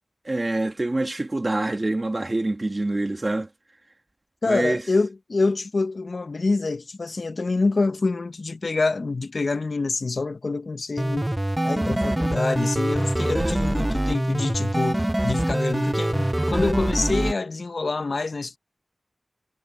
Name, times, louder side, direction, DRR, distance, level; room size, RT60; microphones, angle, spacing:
voice 1, 0.3-3.5 4.5-4.8, right 2 dB, 40° right, 2.1 m, -25 dB
voice 2, 4.4-11.3 11.6-18.6, left 3 dB, 70° left, 0.9 m, -26 dB
sound 1, 11.0-17.3, right 1 dB, 20° right, 0.4 m, -24 dB
wide cardioid pair, 65°, 0 cm